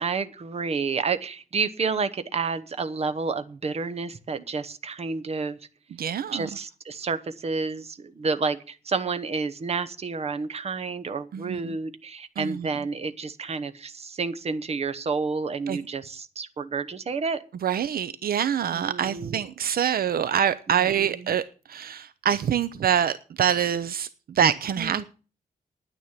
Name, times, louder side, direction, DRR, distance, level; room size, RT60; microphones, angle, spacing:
voice 1, 0.0-5.6 6.3-17.4 18.7-19.4 20.7-21.3 24.8-25.0, right 4 dB, 40° right, 0.9 m, -30 dB
voice 2, 6.0-6.5 11.3-11.8 12.4-12.7 15.7-15.8 17.6-21.4 21.7-25.0, right 9 dB, 70° right, 0.6 m, -25 dB
10.0 x 9.5 x 7.3 m
wide cardioid pair, 175°, 16 cm